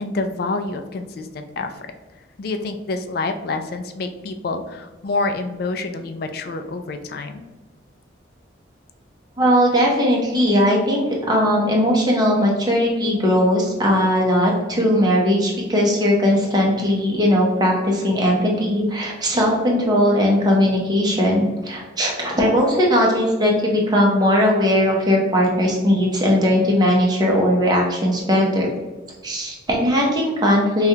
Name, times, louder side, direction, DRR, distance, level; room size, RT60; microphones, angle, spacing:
voice 1, 0.0-1.7 2.4-7.5, left 3 dB, 50° left, 7 dB, 0.3 m, -27 dB
voice 2, 9.4-28.7 29.2-30.9, equal, 20° right, -2 dB, 0.7 m, -18 dB
5.0 x 2.3 x 2.8 m, 1.2 s
head